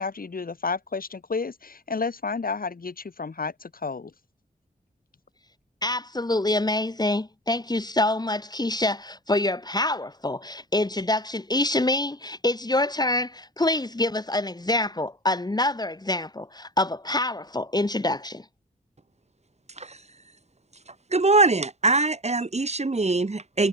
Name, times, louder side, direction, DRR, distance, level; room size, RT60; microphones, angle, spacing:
voice 1, 0.0-4.1, left 4 dB, 70° left, 3.3 m, -31 dB
voice 2, 5.8-18.4, left 2 dB, 25° left, 2.1 m, -26 dB
voice 3, 21.1-23.7, right 3 dB, 45° right, 6.5 m, -22 dB
wide cardioid pair, 80°, 16 cm